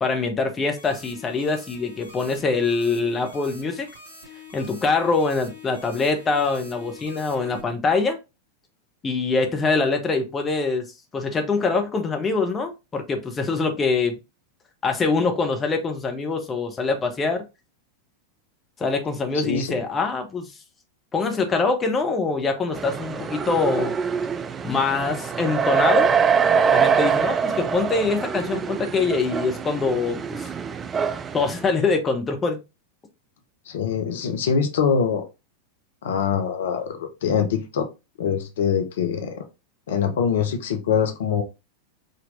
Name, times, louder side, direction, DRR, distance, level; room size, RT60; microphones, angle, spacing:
voice 1, 0.0-3.9 4.5-8.2 9.0-10.8 11.1-14.2 14.8-17.4 18.8-20.5 21.1-23.9 24.6-26.1 26.7-30.5 31.3-32.6, left 4 dB, 20° left, 0.8 m, -24 dB
sound 1, 0.8-7.6, left 3 dB, 85° left, 1.3 m, -45 dB
voice 2, 19.3-19.8 33.7-35.2 36.0-37.9 38.2-39.4 39.9-41.4, left 7 dB, 60° left, 0.7 m, -24 dB
Howler Monkeys, 22.8-31.7, right 6 dB, 20° right, 0.3 m, -24 dB
5.0 x 2.9 x 2.6 m
figure-of-eight pair, 90°, 0 cm